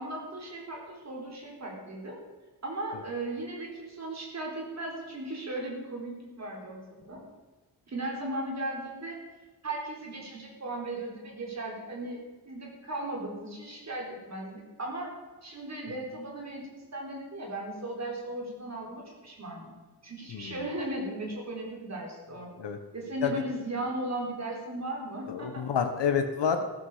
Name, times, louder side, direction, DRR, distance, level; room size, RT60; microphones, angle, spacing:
voice 1, 0.0-2.2 2.6-6.8 7.1-7.2 7.9-9.2 9.6-12.2 12.5-15.1 15.4-19.7 20.0-22.5 22.9-25.6, right 1 dB, 40° right, -1 dB, 4.2 m, -37 dB
voice 2, 25.3-26.7, left 6 dB, 90° left, 6 dB, 1.2 m, -28 dB
14.5 x 13.5 x 5.0 m, 1.2 s
wide cardioid pair, 170°, 41 cm